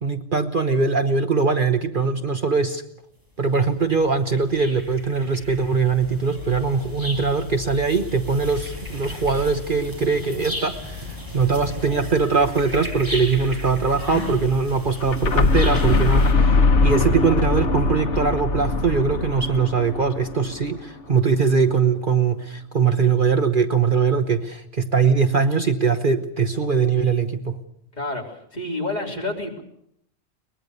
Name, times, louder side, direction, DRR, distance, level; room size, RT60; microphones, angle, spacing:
voice 1, 0.0-2.8 3.4-27.6, right 5 dB, 45° right, 7 dB, 1.2 m, -21 dB
sound 1, 2.4-2.5 3.4-16.3, left 2 dB, 15° right, 7.2 m, -35 dB
sound 2, 15.0-20.8, left 3 dB, 70° left, 1.6 m, -21 dB
voice 2, 27.9-29.6, left 2 dB, 35° left, 0 dB, 3.7 m, -29 dB
23.0 x 21.0 x 6.7 m, 0.72 s
omnidirectional pair, 1.3 m